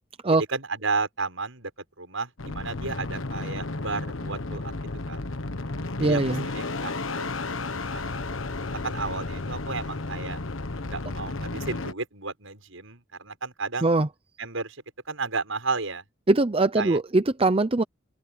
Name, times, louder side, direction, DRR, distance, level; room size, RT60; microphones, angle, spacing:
voice 1, 0.3-1.7 2.0-4.6 5.1-5.3 6.0-6.2 6.5-7.6 7.9-8.4 8.7-10.4 10.8-13.9 14.4-14.8 15.1-16.0 16.8-17.0, right 4 dB, 85° right, 6.9 m, -33 dB
sound 1, 2.4-11.9, left 2 dB, 80° left, 1.4 m, -33 dB
voice 2, 6.0-6.4 13.8-14.1 16.3-17.8, right 2 dB, 30° right, 0.7 m, -21 dB
open air
head